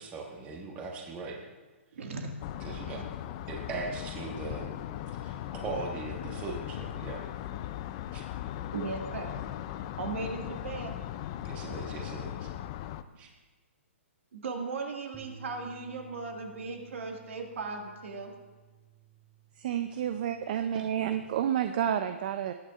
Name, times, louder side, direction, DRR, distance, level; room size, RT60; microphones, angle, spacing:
voice 1, 0.0-1.4 2.6-3.1 3.5-4.7 5.2-5.4 5.6-7.2 8.1-8.2 11.4-12.5 13.2-13.3, right 4 dB, 20° right, 0 dB, 1.3 m, -39 dB
voice 2, 1.9-2.3 6.2-6.4 8.7-9.4 10.0-10.9 14.3-18.3, right 4 dB, 70° right, 2 dB, 2.0 m, -37 dB
sound 1, 2.4-13.0, left 12 dB, 25° left, 0.3 m, -38 dB
sound 2, 15.1-21.4, right 7 dB, ahead, 0.7 m, -56 dB
voice 3, 19.6-22.5, right 10 dB, 40° right, 8 dB, 0.4 m, -30 dB
21.0 x 9.1 x 2.5 m, 1.3 s
hypercardioid pair, 160°, 7 cm